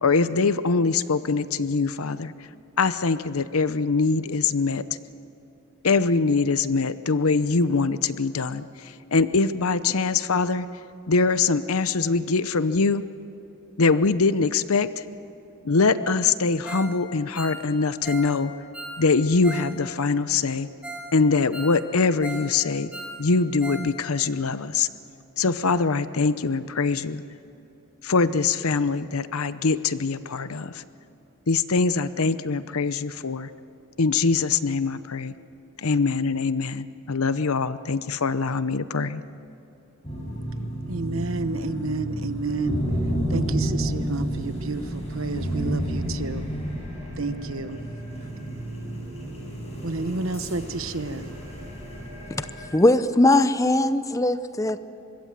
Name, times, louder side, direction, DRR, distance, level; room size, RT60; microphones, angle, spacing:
voice 1, 0.0-2.5 2.8-4.8 5.8-10.7 11.1-13.0 13.8-15.0 15.6-18.5 19.0-20.7 21.1-22.9 23.2-24.9 25.4-27.2 28.0-30.8 31.5-33.5 34.0-35.3 35.8-39.2, left 4 dB, 80° left, 0.8 m, -23 dB
Ringtone, 16.6-16.9 17.2-19.7 20.0-20.1 20.5-20.6 20.8-21.1 21.4-22.5 22.8-23.9 24.2-24.3 24.7-24.8, right 1 dB, 5° right, 3.1 m, -38 dB
sound 1, 40.0-52.7, right 1 dB, 30° left, 6.8 m, -31 dB
voice 2, 40.9-42.8 43.3-46.5 47.2-47.8 48.2-48.3 49.8-51.3, right 3 dB, 70° right, 1.1 m, -30 dB
voice 3, 52.7-54.8, left 1 dB, 15° left, 0.7 m, -20 dB
25.0 x 22.0 x 7.6 m
head